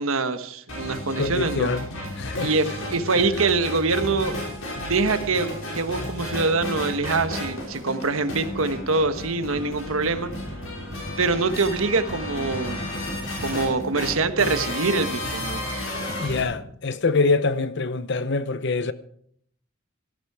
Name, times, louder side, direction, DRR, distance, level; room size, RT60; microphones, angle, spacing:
voice 1, 0.0-1.7 2.4-4.4 4.9-10.3 11.2-12.8 13.4-15.6, right 3 dB, 80° right, 1.3 m, -24 dB
sound 1, 0.7-16.4, left 1 dB, 75° left, 5.6 m, -32 dB
voice 2, 1.2-1.9 2.2-2.5 16.2-18.9, left 3 dB, 55° left, 0.8 m, -24 dB
17.0 x 14.0 x 4.8 m
head